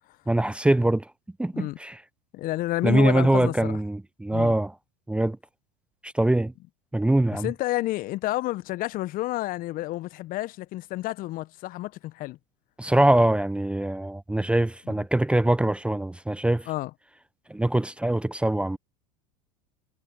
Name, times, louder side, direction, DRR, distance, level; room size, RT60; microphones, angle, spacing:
voice 1, 0.3-1.1 1.4-2.0 2.8-4.7 5.1-5.4 6.0-6.5 6.9-7.5 12.8-16.7 17.5-18.8, right 1 dB, 5° right, 1.0 m, -23 dB
voice 2, 2.3-3.8 4.3-4.5 7.3-12.4 14.9-15.0 16.7-16.9, left 17 dB, 45° left, 1.2 m, -30 dB
figure-of-eight pair, 80°, 20 cm